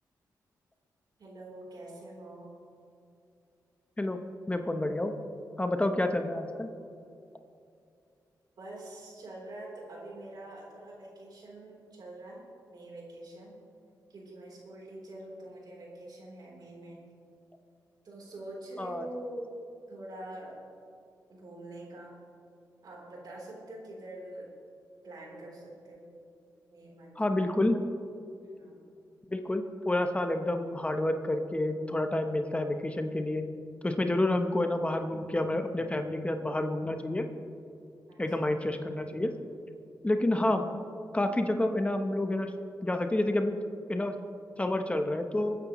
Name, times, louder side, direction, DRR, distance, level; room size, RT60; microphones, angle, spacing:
voice 1, 1.2-2.5 8.6-13.5 14.1-17.0 18.0-19.5 19.9-20.6 21.3-22.2 22.8-24.5 25.0-26.1 26.7-27.5 28.6-28.8 38.1-38.5 40.2-40.5, right 1 dB, 70° right, -3 dB, 3.6 m, -45 dB
voice 2, 4.5-5.1 5.6-6.7 18.8-19.1 27.2-27.8 29.3-33.5 33.8-37.3 38.2-39.3 40.0-40.6 41.1-42.5 42.8-43.6 43.9-44.2 44.6-45.6, left 1 dB, 15° left, 6 dB, 0.9 m, -29 dB
21.0 x 9.6 x 3.1 m, 2.5 s
cardioid pair, 70°, 7 cm